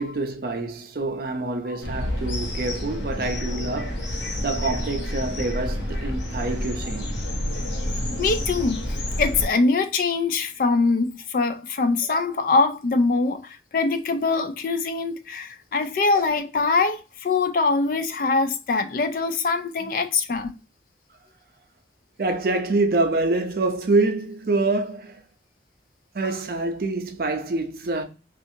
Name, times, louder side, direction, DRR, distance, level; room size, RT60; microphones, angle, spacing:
voice 1, 0.0-7.1 19.8-19.9 22.2-25.2 26.1-28.0, right 2 dB, 55° right, 0.5 m, -26 dB
sound 1, 1.8-9.5, left 1 dB, 85° left, 0.8 m, -29 dB
voice 2, 8.2-8.8 9.2-20.5, left 3 dB, 50° left, 0.3 m, -23 dB
2.7 x 2.4 x 2.5 m
head